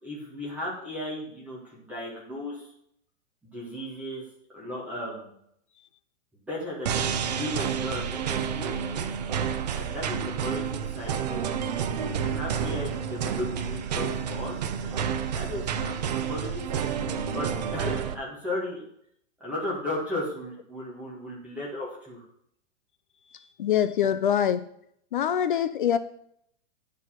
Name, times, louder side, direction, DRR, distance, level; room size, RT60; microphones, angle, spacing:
voice 1, 0.0-2.7 3.4-4.2 4.5-5.3 6.5-7.0 7.3-9.1 9.7-11.5 11.9-15.0 15.3-18.8 19.4-22.3, left 1 dB, 5° right, -6 dB, 1.8 m, -36 dB
sound 1, 6.9-18.1, right 7 dB, 35° right, 0.5 m, -30 dB
voice 2, 23.3-24.6 25.1-26.0, left 9 dB, 45° left, 12 dB, 0.4 m, -24 dB
9.7 x 4.7 x 6.0 m, 0.70 s
supercardioid pair, 175°, 36 cm